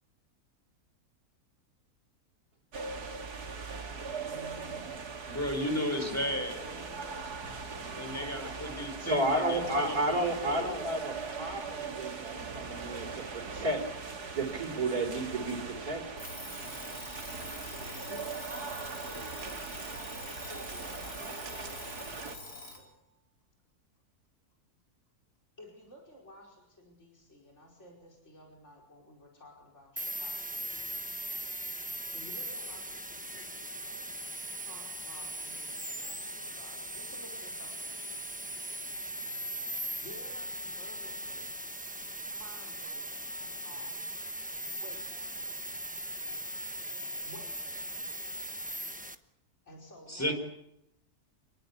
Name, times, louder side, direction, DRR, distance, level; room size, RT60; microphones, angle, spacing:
sound 1, 2.7-22.4, right 4 dB, 90° right, 2.6 m, -40 dB
voice 1, 4.3-4.8 5.6-7.3 8.1-8.8 18.1-22.9 25.6-30.6 32.1-34.2 34.6-38.3 40.0-41.5 42.3-43.1 43.4-43.9 44.8-45.4 47.2-48.1 49.7-50.3, left 1 dB, 45° left, -1 dB, 5.5 m, -53 dB
voice 2, 5.3-6.6 7.9-10.8 50.1-50.3, left 1 dB, 10° left, 5 dB, 4.6 m, -34 dB
voice 3, 9.0-13.9 14.3-16.1, right 1 dB, 70° right, 0 dB, 4.8 m, -32 dB
Alarm, 16.2-22.9, left 2 dB, 85° left, 4.9 m, -45 dB
sound 2, 30.0-49.1, right 1 dB, 5° right, 1.0 m, -39 dB
28.0 x 20.0 x 8.5 m, 0.81 s
omnidirectional pair, 1.6 m